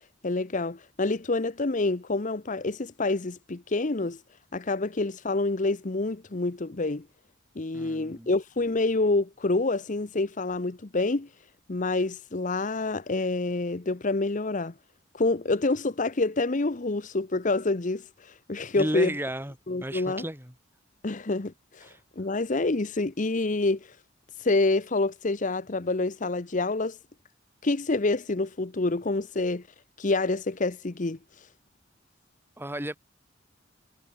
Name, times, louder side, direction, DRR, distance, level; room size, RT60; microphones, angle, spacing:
voice 1, 0.2-4.2 4.5-7.1 7.6-11.3 11.7-14.7 15.1-19.1 19.7-20.2 21.0-24.0 24.4-27.0 27.6-29.6 30.0-31.5, left 2 dB, 40° left, 0.8 m, -27 dB
voice 2, 7.7-8.3 18.7-19.5 19.8-20.5 21.8-22.0 32.6-33.0, right 1 dB, 10° right, 4.7 m, -33 dB
head